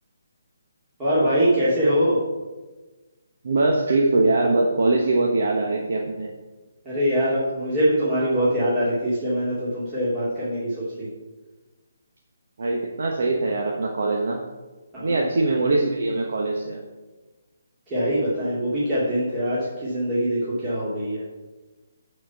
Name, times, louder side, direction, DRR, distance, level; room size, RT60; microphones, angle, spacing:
voice 1, 1.0-2.2 6.8-11.1 14.9-15.2 17.9-21.2, equal, 20° right, -11 dB, 2.4 m, -23 dB
voice 2, 3.4-6.3 12.6-14.4 15.0-16.8, right 2 dB, 65° right, 0 dB, 1.1 m, -22 dB
9.1 x 4.4 x 5.7 m, 1.2 s
hypercardioid pair, 155°, 0 cm